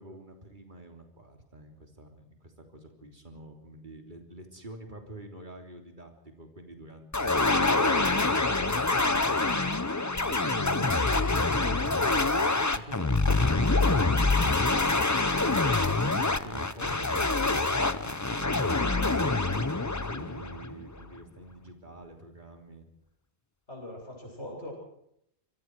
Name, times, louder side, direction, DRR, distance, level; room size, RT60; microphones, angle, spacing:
voice 1, 0.0-7.9 8.4-14.9 15.7-22.9, right 1 dB, 45° right, 4 dB, 3.4 m, -47 dB
sound 1, 7.1-21.0, left 3 dB, 20° left, 0.7 m, -26 dB
voice 2, 23.7-24.7, left 1 dB, 85° left, -1 dB, 8.3 m, -42 dB
26.0 x 22.5 x 4.7 m, 0.74 s
omnidirectional pair, 1.1 m